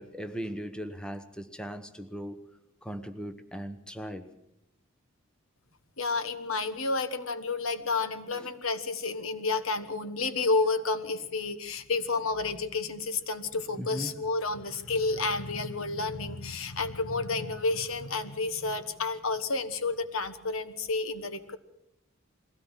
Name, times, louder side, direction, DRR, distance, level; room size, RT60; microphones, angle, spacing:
voice 1, 0.0-2.4 2.8-4.3 8.3-8.5 13.8-14.1, equal, 5° left, 9 dB, 1.1 m, -38 dB
voice 2, 6.0-21.6, left 3 dB, 80° left, 11 dB, 1.4 m, -30 dB
21.5 x 16.5 x 7.3 m, 0.82 s
head